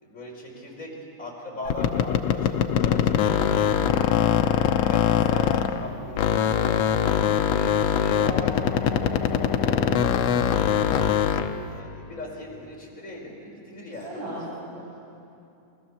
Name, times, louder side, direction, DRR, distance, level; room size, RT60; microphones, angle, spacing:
voice 1, 0.0-0.9 1.2-3.7 4.8-6.8 7.3-11.1 11.7-14.9, left 1 dB, 25° left, -2 dB, 5.2 m, -39 dB
sound 1, 1.7-5.9 6.2-11.6, left 8 dB, 70° left, 1.7 m, -22 dB
voice 2, 13.9-14.9, equal, 90° right, -8 dB, 8.0 m, -37 dB
28.5 x 22.5 x 7.1 m, 2.7 s
omnidirectional pair, 3.5 m